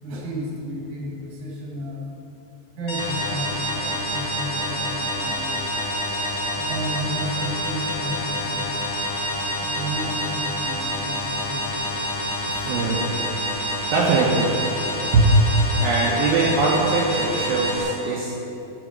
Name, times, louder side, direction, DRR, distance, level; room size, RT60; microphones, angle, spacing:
voice 1, 0.0-2.0 2.8-5.7 6.5-8.7 9.6-11.9 12.5-12.8, equal, 55° right, -3 dB, 2.4 m, -33 dB
sound 1, 2.9-17.8, equal, 65° left, 1.8 m, -27 dB
voice 2, 12.6-13.0 13.9-14.5 15.1-15.3 15.8-18.3, right 3 dB, 75° right, -5 dB, 2.3 m, -21 dB
9.4 x 8.3 x 5.2 m, 2.9 s
omnidirectional pair, 5.5 m